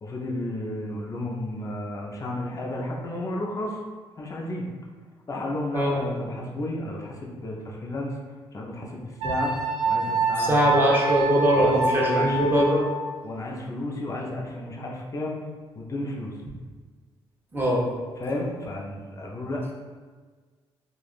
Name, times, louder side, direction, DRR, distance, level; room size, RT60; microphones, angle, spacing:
voice 1, 0.0-3.8 4.2-4.7 5.3-8.2 8.5-9.5 9.9-10.9 11.6-12.9 13.2-15.4 15.8-16.3 18.2-19.7, left 1 dB, 35° left, -1 dB, 0.6 m, -32 dB
Wind instrument woodwind instrument, 9.2-13.0, right 3 dB, 65° right, 0.4 m, -26 dB
voice 2, 10.4-12.7 17.5-17.8, equal, 20° right, -4 dB, 0.8 m, -21 dB
3.4 x 2.4 x 2.4 m, 1.5 s
cardioid pair, 90°, 10 cm